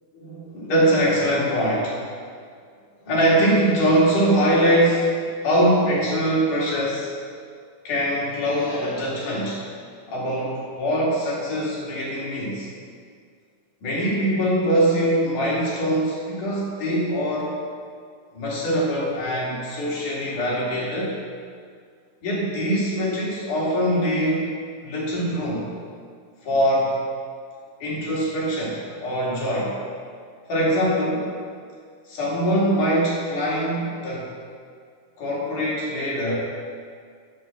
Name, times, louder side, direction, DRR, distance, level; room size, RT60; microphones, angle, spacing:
voice 1, 0.1-2.0 3.1-5.1 5.4-7.1 7.8-9.6 10.1-12.7 13.8-17.5 18.3-21.2 22.2-24.5 24.8-25.7 26.4-27.0 27.8-29.8 30.5-31.3 32.1-34.3 35.2-36.4, equal, 65° left, -6 dB, 4.2 m, -22 dB
12.0 x 6.0 x 7.5 m, 2.1 s
omnidirectional pair, 4.0 m